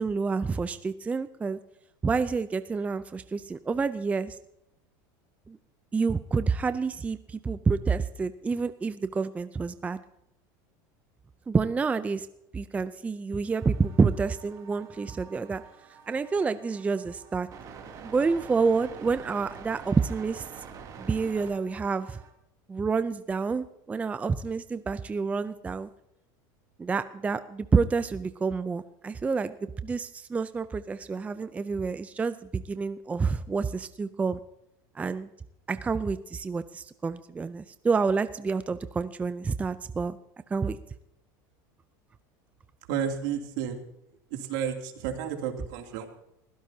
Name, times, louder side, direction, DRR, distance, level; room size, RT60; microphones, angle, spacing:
voice 1, 0.0-1.6 2.0-4.4 5.5-5.6 5.9-10.0 11.5-12.3 12.5-15.6 16.1-17.5 18.0-20.5 21.0-22.2 22.7-25.9 26.8-29.5 29.8-34.4 35.0-35.3 35.7-40.2 40.5-40.8, right 4 dB, 15° right, 12 dB, 0.5 m, -28 dB
sound 1, 13.5-22.3, right 6 dB, 35° right, 2.9 m, -47 dB
voice 2, 42.9-43.8 44.3-46.1, right 8 dB, 75° right, 3 dB, 2.8 m, -31 dB
21.5 x 16.0 x 2.8 m, 0.81 s
supercardioid pair, 135°, 11 cm